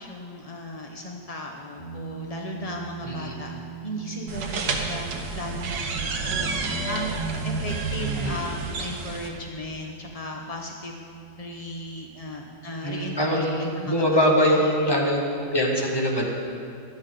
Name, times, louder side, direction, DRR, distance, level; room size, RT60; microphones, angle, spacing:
voice 1, 0.0-3.5 3.8-6.5 6.9-7.2 7.4-11.0 11.4-13.4 13.8-14.7, left 1 dB, 55° left, 1 dB, 0.4 m, -36 dB
sound 1, 1.8-14.9, right 8 dB, 25° right, 3.7 m, -44 dB
voice 2, 3.0-3.3 8.2-8.4 12.8-16.3, equal, 15° left, -1 dB, 1.4 m, -23 dB
sound 2, 4.3-9.3, right 3 dB, 75° right, 1.7 m, -29 dB
17.0 x 11.5 x 3.8 m, 2.4 s
omnidirectional pair, 2.0 m